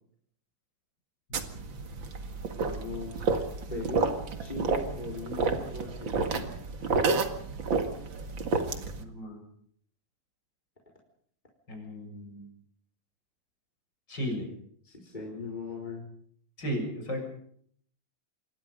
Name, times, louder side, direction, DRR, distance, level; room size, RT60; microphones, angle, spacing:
sound 1, 1.3-9.0, right 4 dB, 40° right, 2.1 m, -30 dB
voice 1, 2.6-3.4 3.7-6.6 8.1-8.2 14.8-16.1, left 3 dB, 10° left, -2 dB, 4.1 m, -39 dB
voice 2, 9.0-9.4 11.7-12.5 14.1-14.5 16.6-17.3, equal, 30° left, 2 dB, 7.4 m, -35 dB
27.5 x 22.0 x 5.4 m, 0.63 s
omnidirectional pair, 4.1 m